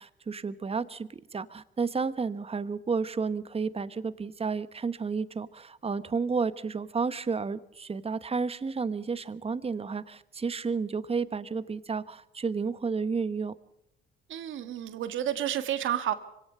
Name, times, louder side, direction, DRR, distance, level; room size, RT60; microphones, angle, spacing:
voice 1, 0.0-13.6, right 5 dB, 30° right, 14 dB, 1.2 m, -31 dB
voice 2, 14.3-16.1, right 11 dB, 80° right, 10 dB, 1.8 m, -30 dB
24.5 x 17.5 x 6.7 m, 0.80 s
cardioid pair, 90°, 20 cm